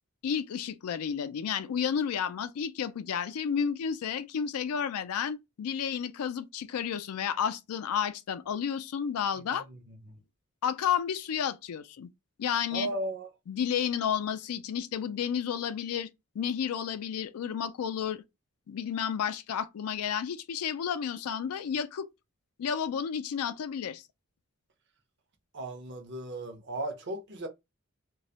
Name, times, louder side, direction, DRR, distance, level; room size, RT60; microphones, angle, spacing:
voice 1, 0.2-9.7 10.6-12.1 12.4-12.9 13.5-16.1 16.4-18.2 18.7-22.1 22.6-24.0, left 8 dB, 85° left, 0.4 m, -31 dB
voice 2, 12.7-13.3 25.5-27.5, right 1 dB, 50° right, 0.6 m, -35 dB
2.3 x 2.0 x 2.7 m
head